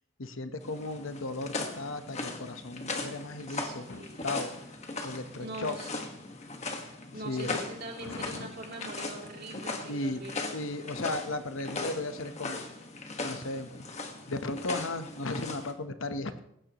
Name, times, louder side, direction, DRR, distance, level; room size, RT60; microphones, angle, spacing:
voice 1, 0.2-4.5 5.0-5.8 7.2-7.6 8.0-8.5 9.9-10.2 10.5-12.6 13.2-13.9 14.3-16.4, left 2 dB, 65° left, 9 dB, 1.0 m, -36 dB
sound 1, 0.6-15.7, left 3 dB, 30° left, 1.5 m, -39 dB
voice 2, 3.5-4.2 5.4-6.1 6.8-10.4, right 2 dB, 50° right, 0 dB, 3.0 m, -43 dB
19.0 x 15.5 x 3.1 m, 0.79 s
head